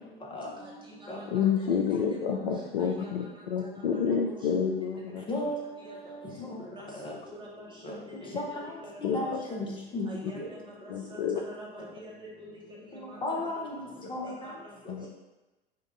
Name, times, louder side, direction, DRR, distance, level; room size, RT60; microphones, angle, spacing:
voice 1, 0.6-1.8 2.2-2.4 2.8-3.7 4.1-4.4 5.3-5.5 5.8-6.0 6.7-9.6 10.1-12.5 12.9-13.8 14.2-15.1, equal, 15° right, -3 dB, 1.2 m, -47 dB
voice 2, 1.3-5.3 9.0-9.4 10.9-11.4 14.9-15.1, left 6 dB, 60° left, 3 dB, 0.5 m, -29 dB
voice 3, 5.3-6.6 7.0-7.1 7.8-7.9 8.4-8.5 9.1-10.5 12.9-13.8 14.1-14.3, left 1 dB, 15° left, -1 dB, 1.0 m, -35 dB
5.2 x 2.6 x 3.8 m, 1.1 s
figure-of-eight pair, 80°, 29 cm